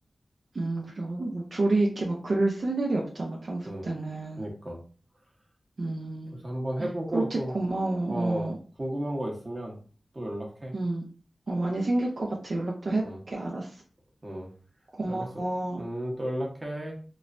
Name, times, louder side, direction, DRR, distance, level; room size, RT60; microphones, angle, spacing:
voice 1, 0.5-4.5 5.8-6.4 6.8-8.6 10.7-11.0 11.5-13.8 14.9-15.8, right 2 dB, 65° right, -2 dB, 0.5 m, -29 dB
voice 2, 4.4-4.8 6.4-7.5 8.1-9.8 10.1-10.7 13.0-13.2 14.2-14.5 15.1-15.3 15.8-17.0, right 1 dB, 35° right, 0 dB, 0.9 m, -33 dB
3.0 x 2.1 x 2.4 m, 0.40 s
cardioid pair, 50°, 0 cm